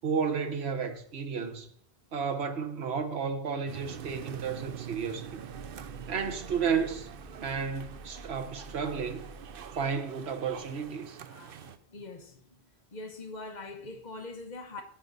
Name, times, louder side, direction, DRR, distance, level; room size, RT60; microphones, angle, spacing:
voice 1, 0.0-1.7 2.1-5.4 6.1-7.1 7.3-9.3 9.7-11.2, right 6 dB, 80° right, 1.3 m, -32 dB
sound 1, 3.7-10.9, right 1 dB, 15° right, 1.9 m, -50 dB
sound 2, 3.7-11.8, right 10 dB, 65° right, 0.7 m, -45 dB
voice 2, 11.3-12.6 12.9-14.8, left 2 dB, 45° left, 1.1 m, -43 dB
9.7 x 7.5 x 4.0 m
omnidirectional pair, 1.1 m